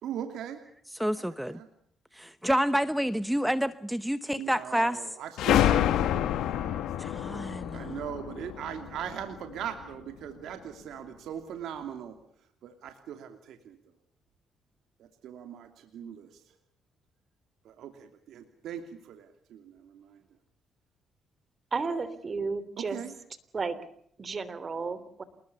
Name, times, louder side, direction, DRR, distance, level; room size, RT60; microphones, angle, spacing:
voice 1, 0.0-0.6 1.3-1.7 4.3-6.8 7.7-12.2 12.6-13.8 15.0-16.3 17.6-20.2 22.8-23.1, right 9 dB, 80° right, 2.8 m, -40 dB
voice 2, 0.9-1.6 2.1-5.0 7.0-8.0, equal, 5° right, 0.9 m, -29 dB
sound 1, 5.4-9.8, left 11 dB, 85° left, 1.8 m, -28 dB
voice 3, 21.7-23.0 23.5-23.8 24.2-25.2, right 4 dB, 35° right, 3.3 m, -32 dB
28.0 x 21.0 x 6.9 m
cardioid pair, 90°, 0 cm